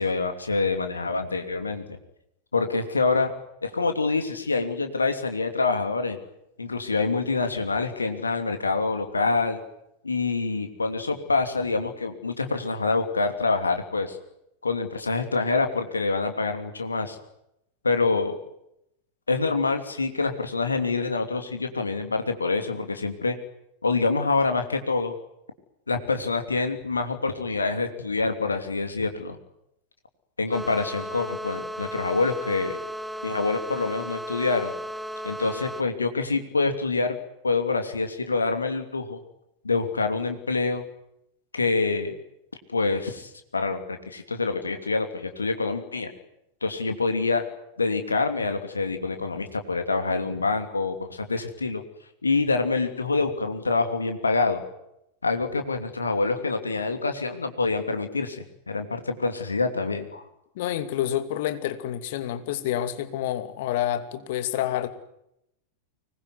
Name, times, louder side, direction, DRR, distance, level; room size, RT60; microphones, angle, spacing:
voice 1, 0.0-1.8 2.5-3.3 3.6-6.2 6.6-9.6 10.0-14.2 14.6-17.2 17.8-18.4 19.3-23.4 23.8-25.1 25.9-29.4 30.4-32.8 33.2-34.7 35.2-37.2 37.4-39.2 39.6-40.8 41.5-42.1 42.7-46.1 46.6-47.4 47.8-51.8 52.2-54.6 55.2-60.2, left 3 dB, 75° left, 6 dB, 2.9 m, -26 dB
sound 1, 30.5-35.8, equal, ahead, 1.8 m, -35 dB
voice 2, 60.6-64.9, left 12 dB, 50° left, 10 dB, 2.6 m, -28 dB
24.5 x 21.0 x 9.6 m, 0.80 s
figure-of-eight pair, 90°, 0 cm